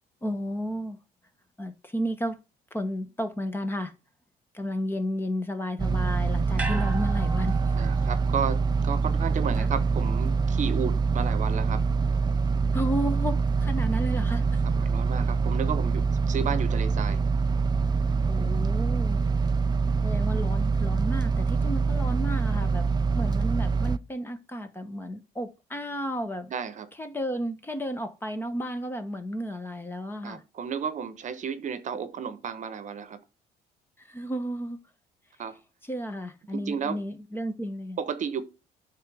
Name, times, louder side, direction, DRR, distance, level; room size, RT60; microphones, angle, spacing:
voice 1, 0.2-1.0 1.6-2.4 2.7-3.9 4.5-7.6 9.6-9.7 12.7-14.6 18.2-19.2 20.0-26.5 27.0-30.4 34.0-34.8 35.8-38.0, equal, 15° left, 1.2 m, -32 dB
sound 1, 5.8-24.0, right 4 dB, 25° right, 0.4 m, -25 dB
sound 2, 6.6-10.9 11.2-11.3, right 3 dB, 10° right, 1.5 m, -40 dB
voice 2, 7.7-11.8 14.7-17.2 26.5-26.9 30.2-33.2 35.4-35.5 36.5-37.0 38.0-38.4, right 7 dB, 45° right, 1.0 m, -32 dB
9.8 x 3.7 x 6.2 m
cardioid pair, 110°, 17 cm